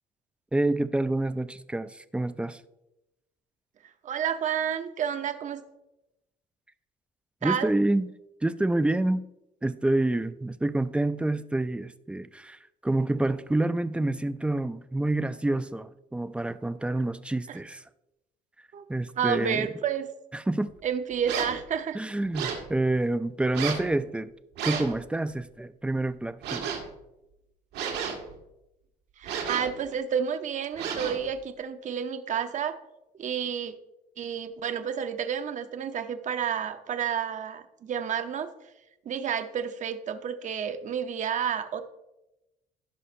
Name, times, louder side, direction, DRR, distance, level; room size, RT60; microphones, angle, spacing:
voice 1, 0.5-2.6 7.4-8.1 8.4-9.2 9.6-17.8 18.9-19.7 20.3-20.7 21.9-24.3 24.6-26.8, right 2 dB, 5° right, 13 dB, 0.3 m, -28 dB
voice 2, 4.0-5.6 7.4-7.7 17.5-17.6 18.7-18.8 19.2-20.1 20.8-22.0 29.2-32.8 33.2-33.7 34.2-38.5 39.1-41.8, right 8 dB, 45° right, 9 dB, 0.8 m, -30 dB
sound 1, 21.2-21.6 22.3-22.7 23.5-23.9 24.6-25.0 26.4-26.9 27.7-28.4 29.2-29.8 30.8-31.3, right 7 dB, 85° right, 1.8 m, -32 dB
16.5 x 5.5 x 2.6 m, 0.91 s
cardioid pair, 110°, 17 cm